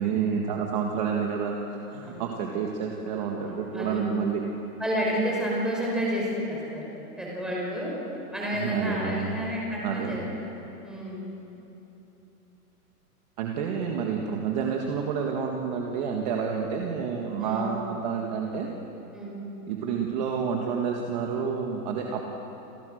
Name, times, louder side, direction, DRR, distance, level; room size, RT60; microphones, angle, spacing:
voice 1, 0.0-4.4 8.5-9.4 9.8-10.3 13.4-18.7 19.7-22.3, right 6 dB, 30° right, 1 dB, 1.8 m, -29 dB
voice 2, 3.4-4.0 4.8-6.8 7.2-7.9 8.3-10.5 10.8-11.4 17.4-17.7 19.1-19.3, equal, ahead, -4 dB, 5.2 m, -30 dB
30.0 x 28.0 x 6.5 m, 3.0 s
hypercardioid pair, 175°, 46 cm